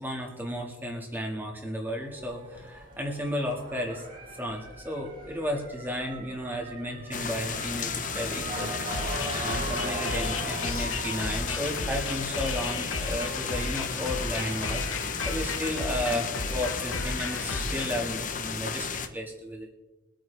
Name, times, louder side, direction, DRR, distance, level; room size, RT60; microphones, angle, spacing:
voice 1, 0.0-4.1 4.4-8.8 9.4-18.9 19.1-19.7, equal, 10° right, 0 dB, 2.0 m, -33 dB
Motor vehicle (road) / Siren, 2.0-15.5, right 1 dB, 40° right, 3.5 m, -40 dB
sound 1, 7.1-19.1, left 5 dB, 40° left, 0.9 m, -34 dB
sound 2, 8.9-18.0, left 3 dB, 75° left, 1.2 m, -34 dB
23.5 x 9.0 x 3.5 m, 1.1 s
head